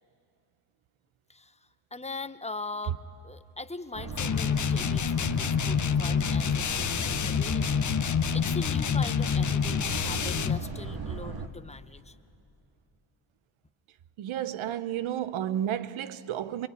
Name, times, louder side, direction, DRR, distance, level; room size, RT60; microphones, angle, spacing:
voice 1, 1.3-3.0 3.2-12.2, left 3 dB, 15° left, 1.1 m, -41 dB
Boat Water vehicle, 3.9-11.5, right 4 dB, 45° right, 2.1 m, -37 dB
sound 1, 4.2-10.6, left 7 dB, 40° left, 0.8 m, -27 dB
voice 2, 14.2-16.7, right 11 dB, 75° right, 1.0 m, -32 dB
24.5 x 22.5 x 9.6 m
cardioid pair, 70°, 49 cm